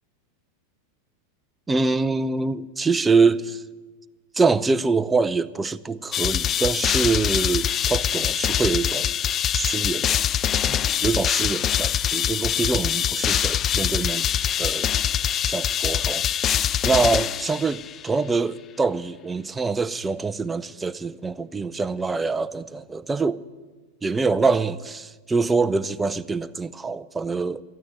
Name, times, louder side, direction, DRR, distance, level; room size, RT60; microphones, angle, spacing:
voice 1, 1.7-3.6 4.4-10.2 10.7-14.3 14.6-14.9 15.5-23.4 24.0-27.6, right 4 dB, 15° right, 0.6 m, -25 dB
sound 1, 6.1-18.0, left 10 dB, 30° left, 0.4 m, -24 dB
13.0 x 9.5 x 9.2 m
hypercardioid pair, 100°, 0 cm